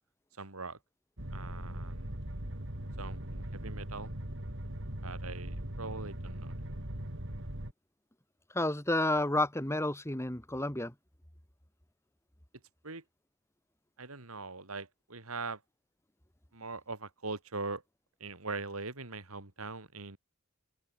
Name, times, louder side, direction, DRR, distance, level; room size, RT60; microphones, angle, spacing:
voice 1, 0.4-0.8 1.3-2.1 3.0-4.1 5.0-6.6 12.8-13.0 14.0-15.6 16.5-17.8 18.2-20.2, right 3 dB, 80° right, 3.2 m, -41 dB
sound 1, 1.2-7.7, right 1 dB, 60° right, 3.6 m, -40 dB
voice 2, 8.5-10.9, left 1 dB, 10° left, 2.0 m, -30 dB
open air
head